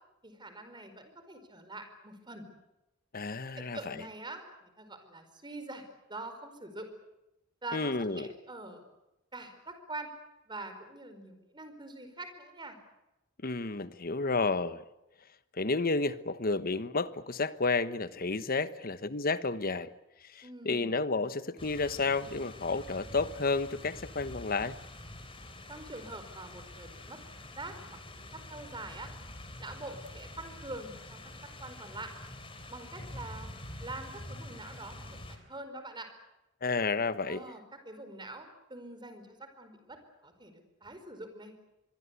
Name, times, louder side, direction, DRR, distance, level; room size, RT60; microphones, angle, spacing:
voice 1, 0.2-2.5 3.5-6.9 7.6-8.9 9.3-10.1 10.5-12.8 20.4-20.9 25.7-27.2 27.6-29.1 29.6-32.1 32.7-33.5 33.8-36.1 37.3-41.5, right 2 dB, 25° right, 4.8 m, -45 dB
voice 2, 3.1-4.0 7.7-8.3 13.4-14.8 15.5-19.9 20.2-24.8 36.6-37.4, left 3 dB, 50° left, 1.2 m, -31 dB
sound 1, 21.6-35.4, left 1 dB, 30° left, 3.7 m, -46 dB
25.5 x 23.0 x 8.3 m
head